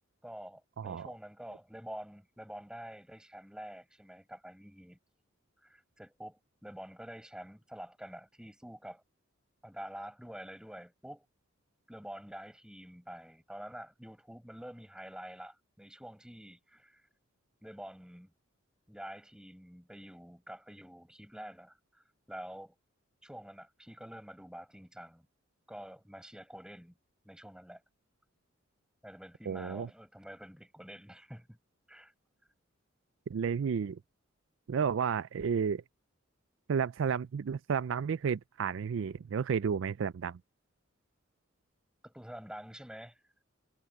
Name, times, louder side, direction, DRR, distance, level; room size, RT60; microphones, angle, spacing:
voice 1, 0.2-5.0 5.6-9.0 9.6-11.2 11.9-17.1 17.6-18.3 18.9-22.7 23.2-25.3 25.7-27.0 27.2-27.8 29.0-31.6 31.9-32.1 42.0-43.2, equal, 5° right, 7.4 m, -47 dB
voice 2, 0.8-1.1 29.5-29.9 33.3-34.0 34.7-35.8 36.7-40.4, right 6 dB, 65° right, 0.4 m, -32 dB
head